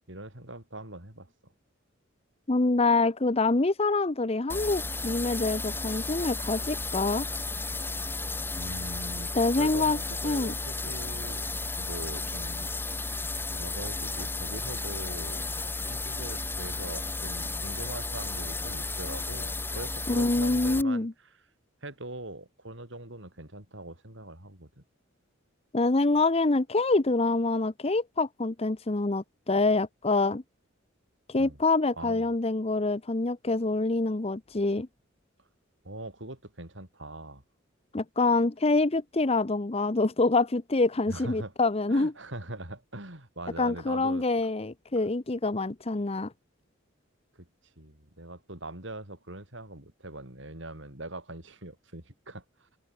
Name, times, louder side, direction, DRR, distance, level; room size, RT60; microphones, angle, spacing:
voice 1, 0.1-1.3 7.9-8.3 8.6-11.4 11.8-13.2 13.5-21.1 21.8-24.8 31.4-31.6 32.0-32.3 35.8-37.4 41.1-41.5 41.9-44.2 47.3-47.5 47.8-52.7, right 1 dB, 65° right, 6.1 m, -42 dB
voice 2, 2.5-7.3 9.3-10.0 10.2-10.5 20.1-21.1 25.7-30.4 31.3-34.9 37.9-42.1 43.6-46.3, left 3 dB, 30° left, 0.8 m, -26 dB
sound 1, 4.5-20.8, left 3 dB, 10° left, 1.9 m, -33 dB
head